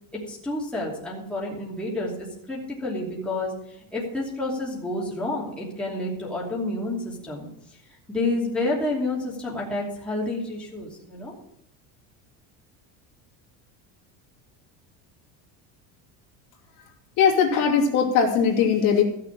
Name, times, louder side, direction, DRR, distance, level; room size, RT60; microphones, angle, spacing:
voice 1, 0.1-7.5 8.1-11.3, left 2 dB, 5° left, -5 dB, 2.8 m, -29 dB
voice 2, 17.2-19.0, left 6 dB, 50° left, 0 dB, 2.7 m, -20 dB
15.0 x 6.8 x 7.3 m, 0.78 s
cardioid pair, 175°, 38 cm